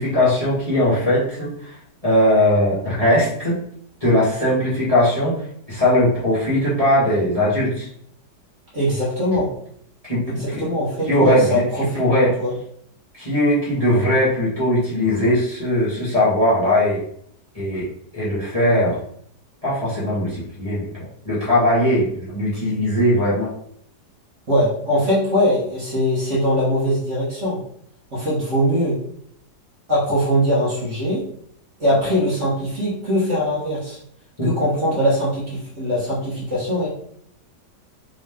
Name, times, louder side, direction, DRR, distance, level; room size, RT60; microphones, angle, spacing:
voice 1, 0.0-1.8 2.0-3.6 4.0-5.4 5.7-7.9 10.0-10.7 11.1-11.6 11.9-12.4 13.2-17.0 17.5-17.9 18.1-19.0 19.6-20.9 21.2-23.5 34.4-34.5, left 1 dB, 20° left, -9 dB, 1.4 m, -19 dB
voice 2, 8.7-9.5 10.2-12.0 12.4-12.5 24.5-27.6 28.1-29.0 29.9-31.2 31.8-34.0 34.4-36.9, equal, 45° right, -7 dB, 1.6 m, -21 dB
3.8 x 3.0 x 3.4 m, 0.66 s
omnidirectional pair, 1.9 m